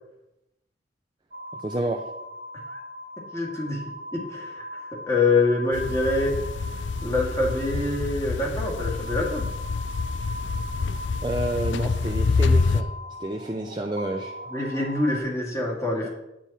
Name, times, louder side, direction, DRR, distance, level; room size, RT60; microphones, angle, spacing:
sound 1, 1.3-15.2, left 1 dB, 50° right, 1.1 m, -40 dB
voice 1, 1.6-2.0 11.2-12.9 13.2-14.3 16.0-16.1, right 1 dB, 25° right, 2 dB, 0.6 m, -29 dB
voice 2, 3.3-3.8 4.1-4.6 5.1-6.4 7.0-9.5 14.5-16.1, left 2 dB, 15° left, -2 dB, 2.3 m, -25 dB
sound 2, 5.7-12.8, left 4 dB, 75° left, 0.5 m, -27 dB
10.0 x 8.8 x 4.3 m, 0.91 s
head